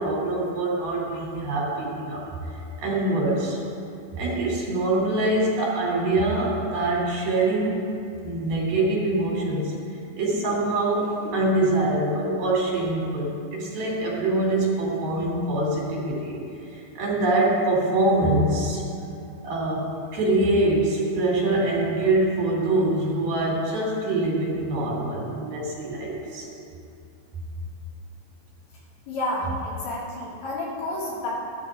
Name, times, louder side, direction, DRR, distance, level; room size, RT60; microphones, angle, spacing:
voice 1, 0.0-2.2 2.8-3.6 4.1-7.7 8.2-9.7 10.1-16.4 16.7-18.8 19.4-26.5, right 2 dB, 80° right, -5 dB, 4.9 m, -24 dB
voice 2, 29.1-31.3, left 1 dB, 85° left, -8 dB, 5.4 m, -30 dB
14.5 x 12.5 x 3.8 m, 2.7 s
omnidirectional pair, 4.3 m